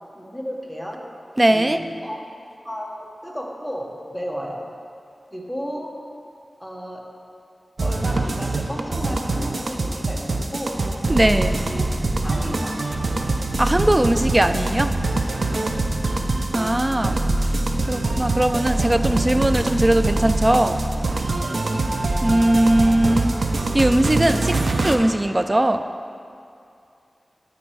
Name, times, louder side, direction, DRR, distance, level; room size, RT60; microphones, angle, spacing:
voice 1, 0.1-1.0 1.5-2.2 2.6-4.7 5.3-5.9 6.6-7.0 7.8-10.8 11.3-11.9 12.2-12.8 15.6-15.8 21.4-21.7, equal, 5° right, -1 dB, 1.2 m, -33 dB
voice 2, 1.4-1.8 11.1-11.6 13.6-14.9 16.5-17.5 17.9-20.8 22.2-23.3 23.7-24.6 24.8-25.9, right 1 dB, 25° right, 9 dB, 0.4 m, -19 dB
sound 1, 7.8-25.0, right 2 dB, 70° right, 0.6 m, -24 dB
12.0 x 4.5 x 4.7 m, 2.5 s
wide cardioid pair, 65°, 0 cm